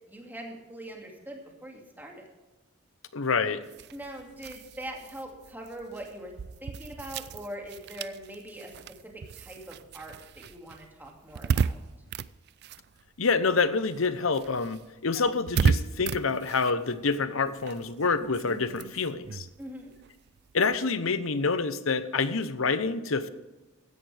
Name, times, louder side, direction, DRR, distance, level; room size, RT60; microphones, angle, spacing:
voice 1, 0.1-2.3 3.9-6.3 6.6-8.7 9.0-11.8 15.1-15.3 19.6-19.9, right 1 dB, 10° right, 0 dB, 2.3 m, -42 dB
voice 2, 3.1-3.6 13.2-19.5 20.5-23.3, left 4 dB, 70° left, 13 dB, 0.9 m, -27 dB
sound 1, 3.6-13.5 13.8-20.8, right 5 dB, 55° right, 0.4 m, -34 dB
15.5 x 11.0 x 3.5 m, 1.1 s
head